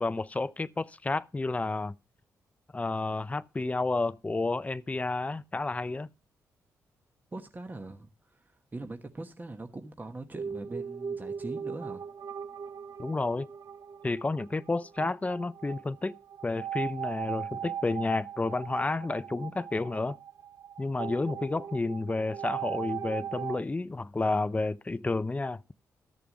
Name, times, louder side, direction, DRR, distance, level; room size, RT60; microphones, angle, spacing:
voice 1, 0.0-1.9 2.7-6.1 13.0-13.5 14.0-16.1 16.4-20.2 20.8-25.6, left 3 dB, 20° left, 0.5 m, -31 dB
voice 2, 7.3-12.1, right 2 dB, 25° right, 1.2 m, -42 dB
sound 1, 10.4-23.6, right 8 dB, 55° right, 0.7 m, -39 dB
12.5 x 6.8 x 5.1 m
supercardioid pair, 55°, 7 cm